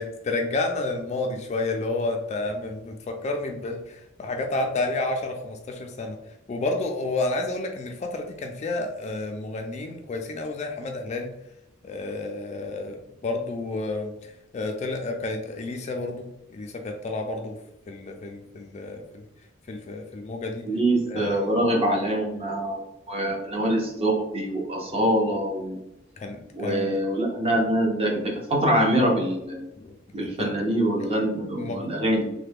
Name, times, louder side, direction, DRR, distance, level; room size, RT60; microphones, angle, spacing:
voice 1, 0.0-6.2 6.5-11.3 11.8-14.1 14.5-16.3 16.5-17.6 17.9-19.2 19.7-20.7 21.1-21.4 26.2-26.9 29.8-29.9 30.2-30.5 31.6-31.9, left 2 dB, 35° left, 4 dB, 0.3 m, -30 dB
voice 2, 20.7-22.8 23.1-25.8 26.5-29.7 30.1-32.3, right 1 dB, 30° right, 0 dB, 0.7 m, -24 dB
3.2 x 2.1 x 3.3 m, 0.88 s
head